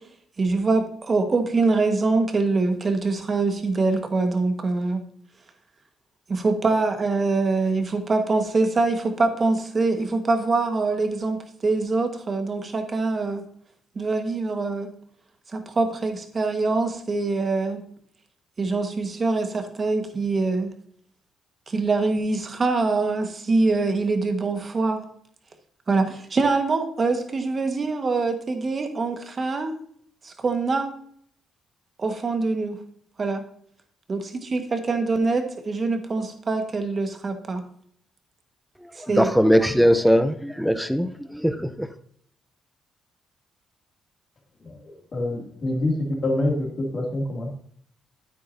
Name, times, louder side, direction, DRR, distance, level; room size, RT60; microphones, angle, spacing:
voice 1, 0.4-5.0 6.3-13.4 13.9-14.9 15.5-17.8 18.6-20.7 21.7-25.0 25.9-29.7 30.2-30.9 32.0-32.8 33.2-33.4 34.1-37.6 39.0-39.3, right 3 dB, 35° right, 6 dB, 1.5 m, -24 dB
voice 2, 39.0-41.9, equal, ahead, 9 dB, 0.7 m, -20 dB
voice 3, 44.6-45.9 46.2-47.5, left 1 dB, 40° left, 0 dB, 2.6 m, -26 dB
9.2 x 8.7 x 2.7 m, 0.64 s
cardioid pair, 90°, 0 cm